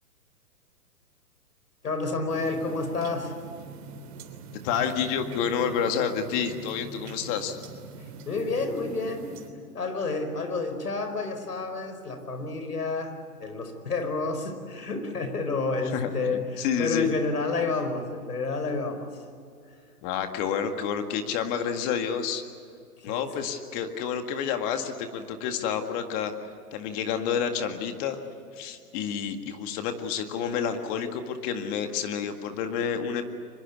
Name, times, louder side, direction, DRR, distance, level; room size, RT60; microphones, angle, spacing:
voice 1, 1.8-3.3 8.0-9.3 9.7-19.2 23.0-23.3, left 3 dB, 80° left, 7 dB, 4.9 m, -30 dB
sound 1, 2.3-9.5, right 4 dB, 40° right, 3.4 m, -44 dB
voice 2, 4.5-7.6 15.9-17.1 20.0-22.4 23.0-26.3 26.7-28.2 28.6-33.3, left 7 dB, 30° left, 6 dB, 1.9 m, -29 dB
24.5 x 22.0 x 8.4 m, 2.4 s
hypercardioid pair, 135°, 46 cm